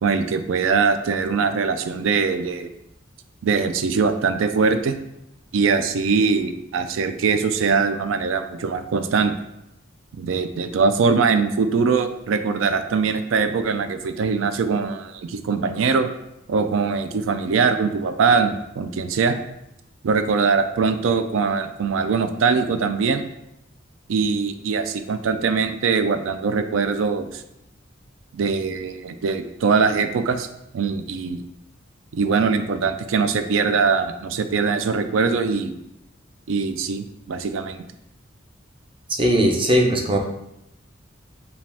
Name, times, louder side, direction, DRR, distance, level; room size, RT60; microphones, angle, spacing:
voice 1, 0.0-2.7 3.4-4.9 5.5-9.3 10.1-16.1 16.5-19.4 20.0-23.2 24.1-27.4 28.3-30.5 30.7-31.4 32.1-35.8 36.5-37.8, right 5 dB, 80° right, 9 dB, 0.4 m, -22 dB
voice 2, 39.1-40.2, equal, 25° right, 1 dB, 0.6 m, -19 dB
4.8 x 2.3 x 3.4 m, 0.84 s
head